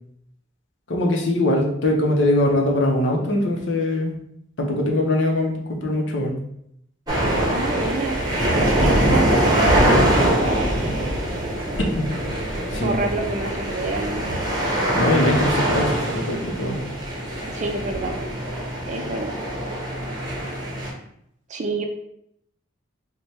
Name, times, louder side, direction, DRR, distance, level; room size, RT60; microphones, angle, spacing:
voice 1, 0.9-4.1 4.6-6.4 11.8-12.1 12.7-13.0 14.9-16.8, left 1 dB, 65° left, 1 dB, 0.7 m, -22 dB
sound 1, 7.1-20.9, right 1 dB, 20° right, 0.9 m, -23 dB
voice 2, 7.5-8.2 8.8-10.8 12.8-14.4 17.5-18.2 18.9-19.3 21.5-21.9, right 3 dB, 35° right, 4 dB, 0.4 m, -28 dB
3.2 x 2.2 x 4.2 m, 0.74 s
head